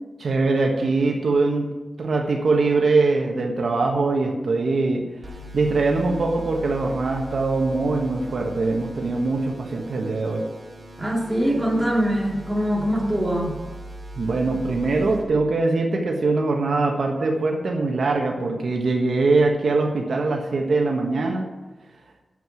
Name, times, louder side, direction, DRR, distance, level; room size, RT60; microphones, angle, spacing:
voice 1, 0.2-1.7 2.0-5.1 5.5-10.5 14.2-21.5, right 3 dB, 75° right, 1 dB, 1.4 m, -22 dB
sound 1, 5.2-15.2, right 1 dB, 30° right, 3.9 m, -40 dB
voice 2, 11.0-13.6, equal, 15° right, -3 dB, 3.0 m, -23 dB
9.1 x 7.6 x 8.6 m, 1.2 s
wide cardioid pair, 125°, 0 cm